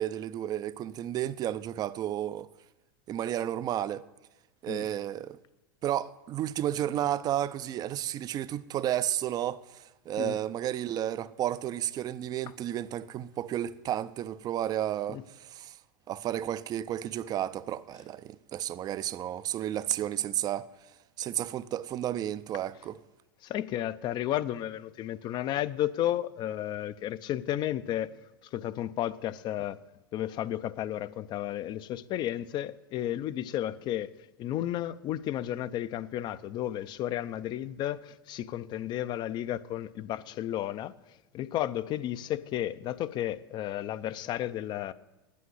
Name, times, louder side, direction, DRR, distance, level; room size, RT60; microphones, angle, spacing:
voice 1, 0.0-2.5 3.1-4.1 4.6-5.4 5.8-15.8 16.1-20.7 21.2-23.0, right 11 dB, 30° right, 0.5 m, -32 dB
voice 2, 23.4-28.1 28.5-29.8 30.1-44.9, left 12 dB, 35° left, 0.5 m, -33 dB
9.4 x 8.4 x 7.8 m
hypercardioid pair, 105°, 12 cm